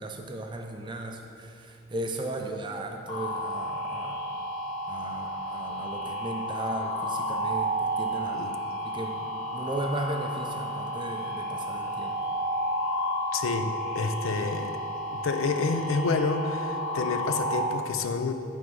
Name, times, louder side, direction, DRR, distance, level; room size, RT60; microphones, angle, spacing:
voice 1, 0.0-4.2 4.9-8.5 8.8-12.2, right 1 dB, 25° right, 3 dB, 0.4 m, -36 dB
sound 1, 3.1-17.6, equal, 35° left, 1.8 m, -32 dB
voice 2, 13.3-14.8 15.2-18.3, left 4 dB, 80° left, 8 dB, 0.5 m, -29 dB
9.5 x 3.5 x 5.3 m, 2.6 s
head